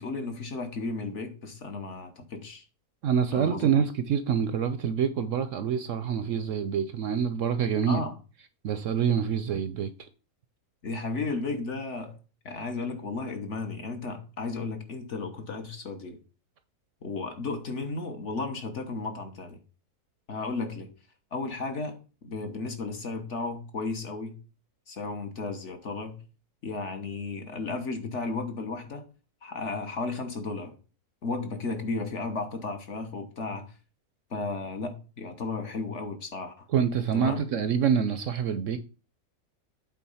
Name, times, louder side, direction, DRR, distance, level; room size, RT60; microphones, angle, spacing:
voice 1, 0.0-2.6 3.3-3.7 7.9-8.1 10.8-12.2 12.4-16.2 17.0-19.6 20.3-20.9 21.3-24.4 24.9-26.2 26.6-29.1 29.4-30.8 31.2-33.7 34.3-36.7 37.1-37.4, left 3 dB, 50° left, 1.4 m, -34 dB
voice 2, 3.0-8.0 8.6-10.1 36.7-38.8, right 7 dB, 65° right, 0.8 m, -26 dB
8.5 x 3.8 x 5.5 m
omnidirectional pair, 1.6 m